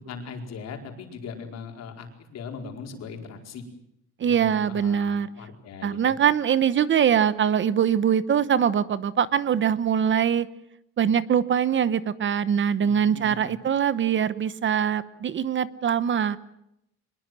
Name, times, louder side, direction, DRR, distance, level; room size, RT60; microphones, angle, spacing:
voice 1, 0.0-3.6 4.2-6.1 12.8-13.6, left 5 dB, 60° left, 3 dB, 4.8 m, -39 dB
voice 2, 4.2-5.3 5.8-10.5 11.0-16.4, right 8 dB, 40° right, 16 dB, 1.0 m, -23 dB
24.0 x 21.0 x 7.7 m, 0.80 s
cardioid pair, 135°, 29 cm